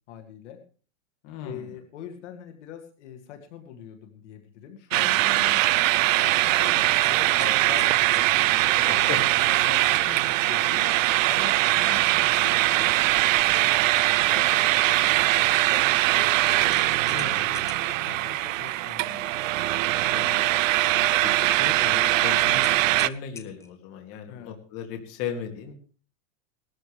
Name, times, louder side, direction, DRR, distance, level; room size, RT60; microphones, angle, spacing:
voice 1, 0.1-0.6 1.4-5.6 6.2-11.0 11.3-13.8 14.3-19.3 20.9-21.2 24.3-24.5, left 9 dB, 65° left, 6 dB, 2.1 m, -43 dB
voice 2, 1.2-1.7 8.9-9.2 17.1-17.4 20.1-20.5 21.2-25.7, left 7 dB, 35° left, 4 dB, 2.4 m, -36 dB
sound 1, 4.9-23.1, right 17 dB, 90° right, 0.6 m, -22 dB
sound 2, 6.6-8.3 10.9-11.2 11.6-11.7 16.6-18.0 22.4-23.8, left 4 dB, 10° left, 0.5 m, -44 dB
19.0 x 13.0 x 3.4 m, 0.39 s
supercardioid pair, 165°, 38 cm